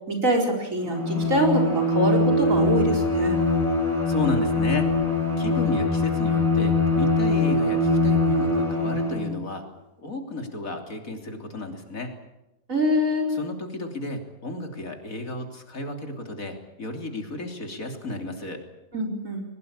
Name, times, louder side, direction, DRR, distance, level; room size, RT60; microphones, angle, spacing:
voice 1, 0.1-3.4 12.7-13.3 18.9-19.4, equal, 75° right, 2 dB, 4.8 m, -24 dB
Bowed string instrument, 0.8-9.4, left 2 dB, 10° right, 6.6 m, -22 dB
voice 2, 4.1-4.9 5.4-9.6 10.0-12.1 13.3-18.6, left 2 dB, 85° left, 4 dB, 3.6 m, -33 dB
21.5 x 20.0 x 8.8 m, 0.98 s
omnidirectional pair, 1.4 m